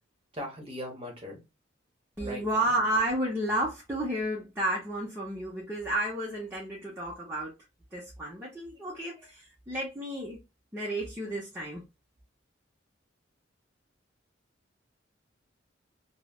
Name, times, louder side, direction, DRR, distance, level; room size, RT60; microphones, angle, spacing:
voice 1, 0.3-1.4 2.2-2.7, equal, 30° right, 1.0 m, -39 dB
voice 2, 2.2-7.5 7.9-10.4 10.7-11.8, right 1 dB, 10° right, 0.6 m, -31 dB
3.1 x 2.0 x 2.2 m
head